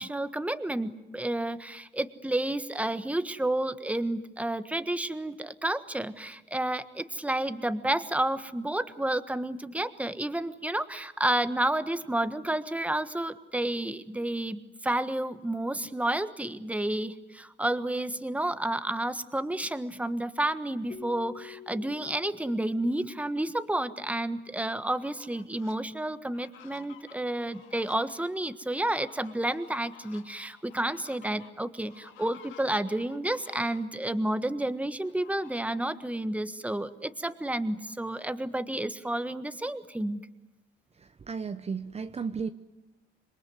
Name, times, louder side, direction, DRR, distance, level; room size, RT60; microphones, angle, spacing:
voice 1, 0.0-40.2, right 1 dB, 5° right, 11 dB, 1.4 m, -30 dB
Keyboard (musical), 20.9-23.7, left 7 dB, 35° left, 4.1 m, -48 dB
Fowl, 24.8-25.7 26.2-34.0 35.0-36.0 36.5-36.6 36.9-38.7, left 9 dB, 90° left, 2.1 m, -55 dB
voice 2, 41.3-42.5, right 5 dB, 30° right, 9 dB, 1.0 m, -33 dB
27.0 x 22.0 x 9.6 m, 0.94 s
cardioid pair, 90°, 20 cm